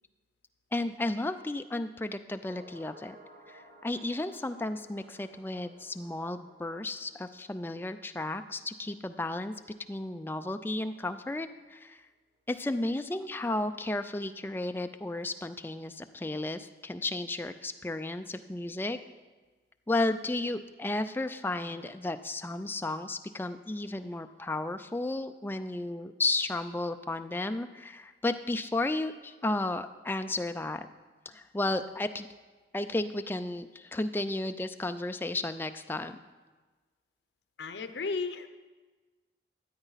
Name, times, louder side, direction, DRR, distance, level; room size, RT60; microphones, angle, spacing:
voice 1, 0.7-3.2 3.5-9.5 9.9-12.0 12.5-19.0 19.9-30.9 31.3-32.3 32.7-36.2, left 2 dB, 10° left, 8 dB, 0.3 m, -33 dB
sound 1, 2.4-10.8 11.1-11.2, right 1 dB, 55° right, 1.5 m, -58 dB
voice 2, 37.6-38.5, left 4 dB, 80° left, 9 dB, 0.7 m, -34 dB
13.5 x 9.0 x 4.0 m, 1.3 s
head